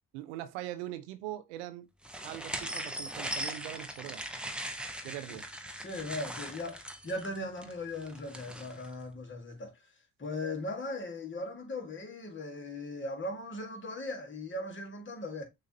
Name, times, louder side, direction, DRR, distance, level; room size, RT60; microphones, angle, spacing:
voice 1, 0.1-1.9 2.2-4.2 5.0-5.5, right 14 dB, 85° right, 0.5 m, -41 dB
sound 1, 2.0-8.9, right 1 dB, 5° right, 0.8 m, -40 dB
voice 2, 5.8-9.9 10.2-15.5, left 2 dB, 35° left, 1.6 m, -39 dB
6.5 x 2.5 x 2.7 m
hypercardioid pair, 50°, 34 cm